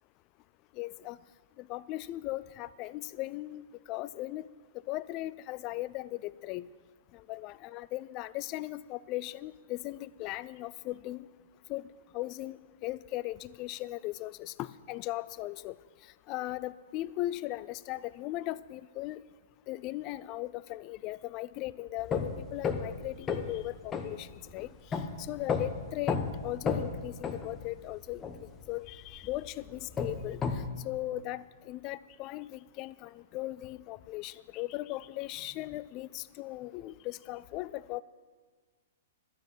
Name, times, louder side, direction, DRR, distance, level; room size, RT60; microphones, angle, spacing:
voice 1, 0.8-1.2 1.6-4.5 4.9-6.7 7.1-11.3 11.7-11.8 12.1-15.8 16.3-19.2 19.7-24.7 25.2-28.2 28.7-38.0, left 17 dB, 35° left, 18 dB, 0.4 m, -38 dB
sound 1, 22.0-30.7, left 5 dB, 20° left, 1.0 m, -34 dB
12.5 x 9.7 x 7.3 m, 1.5 s
figure-of-eight pair, 110°, 0 cm